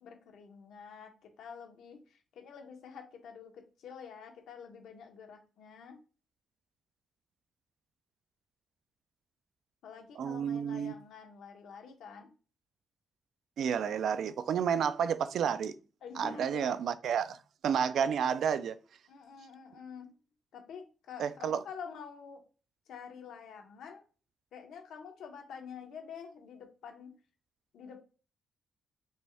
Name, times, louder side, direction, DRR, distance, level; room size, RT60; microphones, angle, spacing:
voice 1, 0.0-1.1 1.4-6.0 9.8-12.3 16.0-16.7 19.1-20.1 20.5-22.4 22.9-24.0 24.5-27.1 27.7-28.0, left 6 dB, 85° left, 0.9 m, -47 dB
voice 2, 10.2-10.9 13.6-15.7 16.2-17.4 17.6-18.8 21.2-21.6, right 7 dB, 70° right, 0.3 m, -30 dB
5.1 x 2.3 x 3.3 m
cardioid pair, 135°, 0 cm